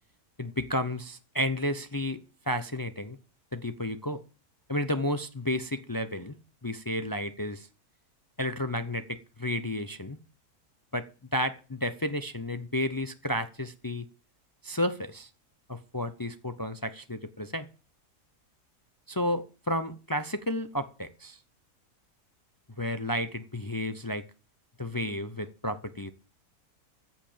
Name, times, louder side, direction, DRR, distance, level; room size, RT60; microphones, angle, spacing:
voice 1, 0.4-3.2 3.5-4.2 4.7-6.3 6.6-7.7 8.4-10.2 10.9-14.1 14.6-15.3 15.7-17.7 19.1-21.4 22.8-24.2 24.8-26.1, left 1 dB, 35° left, 0.3 m, -32 dB
14.5 x 5.7 x 8.6 m
omnidirectional pair, 1.6 m